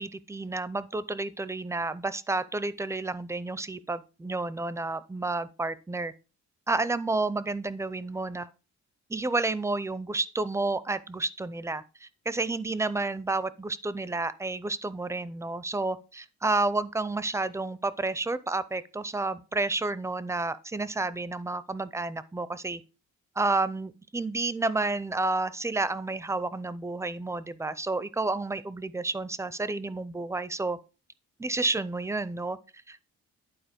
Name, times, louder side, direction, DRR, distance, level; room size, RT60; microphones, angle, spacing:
voice 1, 0.0-6.1 6.7-8.5 9.1-22.8 23.4-30.8 31.4-32.6 32.9-33.0, right 3 dB, 10° right, 0.5 m, -30 dB
11.5 x 4.3 x 5.1 m
cardioid pair, 120°, 29 cm